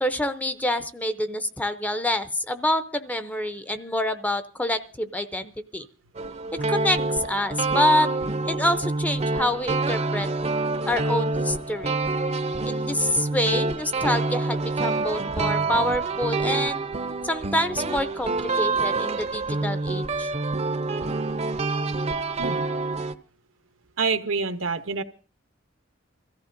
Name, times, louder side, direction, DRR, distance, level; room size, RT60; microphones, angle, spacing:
voice 1, 0.0-5.9 6.7-8.1 8.5-10.3 10.9-12.0 12.7-16.8 17.2-20.3, left 1 dB, 10° left, 10 dB, 0.6 m, -26 dB
sound 1, 6.2-23.1, right 3 dB, 35° right, 0.6 m, -27 dB
voice 2, 24.0-25.0, right 5 dB, 80° right, 10 dB, 0.9 m, -26 dB
24.0 x 14.0 x 2.6 m, 0.37 s
head